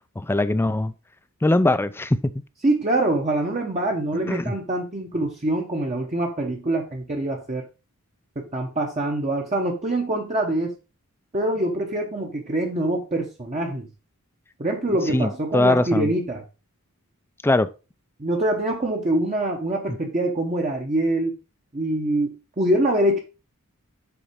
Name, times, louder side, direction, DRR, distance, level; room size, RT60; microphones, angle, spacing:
voice 1, 0.2-0.9 1.4-2.2 4.3-4.5 15.1-16.1 17.4-17.7, left 2 dB, 10° left, 0.4 m, -21 dB
voice 2, 2.6-7.7 8.4-10.7 11.3-13.9 14.6-16.4 18.2-21.4 21.7-23.2, right 1 dB, 30° right, 0.9 m, -24 dB
7.1 x 4.2 x 5.0 m
head